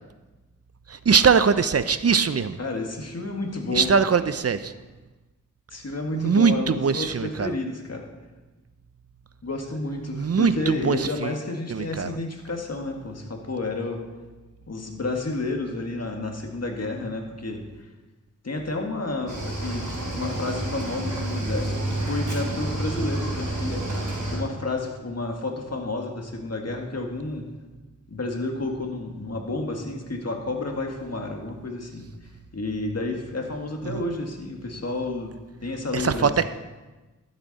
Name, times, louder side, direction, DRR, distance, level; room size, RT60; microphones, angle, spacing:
voice 1, 0.9-2.6 3.7-4.7 6.2-7.5 10.1-11.3 11.7-12.2 33.8-34.0 35.9-36.4, right 6 dB, 50° right, 13 dB, 0.6 m, -22 dB
voice 2, 2.6-3.9 5.7-8.1 9.4-14.0 14.7-17.6 18.4-19.9 20.1-27.5 28.1-32.1 32.5-36.5, left 2 dB, 50° left, 2 dB, 1.9 m, -31 dB
Cricket / Waves surf, 19.3-24.4, right 1 dB, 65° right, 4.2 m, -29 dB
12.5 x 8.2 x 4.1 m, 1.2 s
cardioid pair, 45°, 32 cm